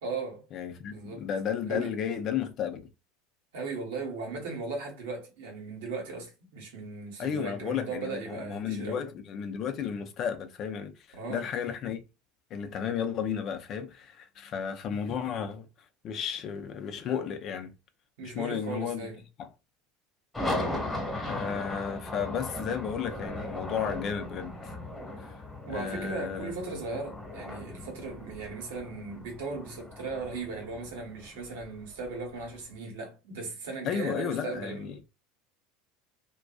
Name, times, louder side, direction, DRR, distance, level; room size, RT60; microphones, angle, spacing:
voice 1, 0.0-0.5 0.9-1.3 1.7-1.9 3.5-9.0 11.1-11.5 18.2-19.2 25.7-35.0, right 3 dB, 80° right, 1.0 m, -37 dB
voice 2, 0.5-2.8 7.2-12.0 12.5-15.7 16.0-17.7 18.2-19.1 19.4-19.5 21.3-24.7 25.2-25.3 25.7-26.5 33.8-35.0, left 7 dB, 50° left, 0.5 m, -33 dB
sound 1, 20.3-32.5, left 1 dB, 10° left, 1.2 m, -38 dB
2.5 x 2.2 x 2.3 m
hypercardioid pair, 90°, 0 cm